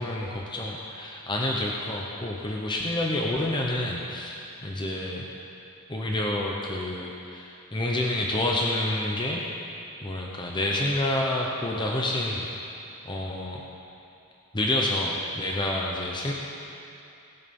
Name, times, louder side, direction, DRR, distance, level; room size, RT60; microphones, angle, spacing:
voice 1, 0.0-5.2 5.9-9.6 10.0-12.5 13.0-13.6 14.5-16.3, left 1 dB, 20° left, -2 dB, 0.9 m, -28 dB
19.0 x 6.6 x 5.5 m, 2.7 s
head